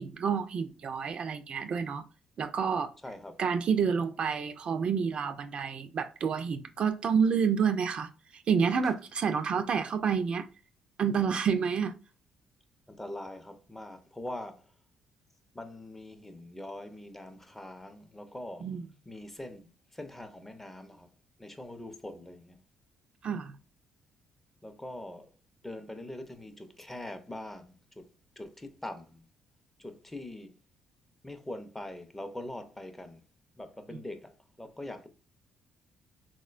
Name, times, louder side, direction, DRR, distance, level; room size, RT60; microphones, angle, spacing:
voice 1, 0.0-2.1 2.4-2.9 3.4-10.5 11.0-12.0 18.6-18.9 23.2-23.6 33.9-34.0, right 6 dB, 50° right, 0.3 m, -29 dB
voice 2, 3.0-3.4 12.9-14.6 15.5-18.7 19.1-21.1 21.4-22.6 24.6-25.3 25.6-28.0 28.4-29.2 29.8-30.5 31.2-33.2 33.6-35.1, left 1 dB, 10° left, 0.5 m, -43 dB
3.6 x 2.1 x 2.4 m
cardioid pair, 80°, 2 cm